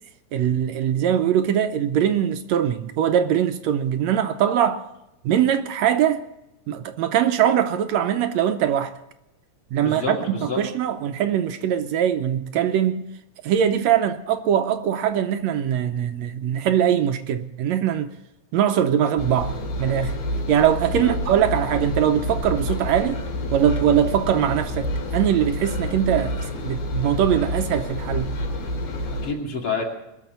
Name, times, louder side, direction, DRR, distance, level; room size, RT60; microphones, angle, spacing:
voice 1, 0.3-4.9 5.2-6.2 6.7-8.9 9.7-13.1 13.4-18.1 18.5-20.1 20.5-23.2 23.5-26.4 26.6-28.3, right 9 dB, 75° right, 1.8 m, -22 dB
voice 2, 9.8-10.6 20.9-21.2 29.1-29.8, left 4 dB, 45° left, 3.3 m, -28 dB
Engine, 19.2-29.3, equal, 85° left, 3.9 m, -28 dB
21.0 x 7.1 x 9.3 m
omnidirectional pair, 3.5 m